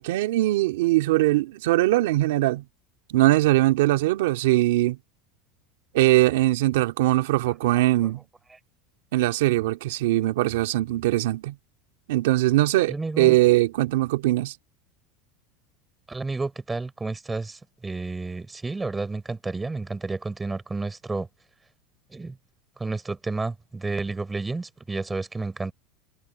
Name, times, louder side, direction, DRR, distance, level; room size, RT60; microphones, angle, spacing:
voice 1, 0.0-2.6 3.1-5.0 5.9-8.2 9.1-11.5 12.1-14.5, right 17 dB, 85° right, 2.4 m, -21 dB
voice 2, 12.9-13.4 16.1-21.3 22.1-22.4 22.8-25.7, right 3 dB, 15° right, 4.6 m, -31 dB
supercardioid pair, 120°, 0 cm